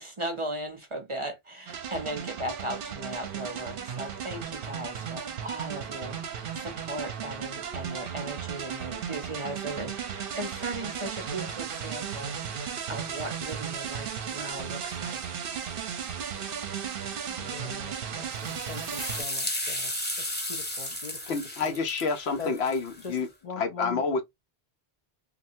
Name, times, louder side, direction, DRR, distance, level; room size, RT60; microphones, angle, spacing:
voice 1, 0.0-15.2, right 1 dB, 35° right, 0.7 m, -37 dB
sound 1, 1.7-19.2, right 7 dB, 65° right, 0.8 m, -35 dB
voice 2, 17.3-21.8 22.4-22.7 23.0-24.2, left 5 dB, 50° left, 0.6 m, -42 dB
sound 2, 18.3-23.2, left 1 dB, 10° left, 0.7 m, -34 dB
voice 3, 21.3-23.3 23.6-24.2, left 4 dB, 85° left, 0.9 m, -28 dB
3.2 x 2.5 x 2.6 m
omnidirectional pair, 1.1 m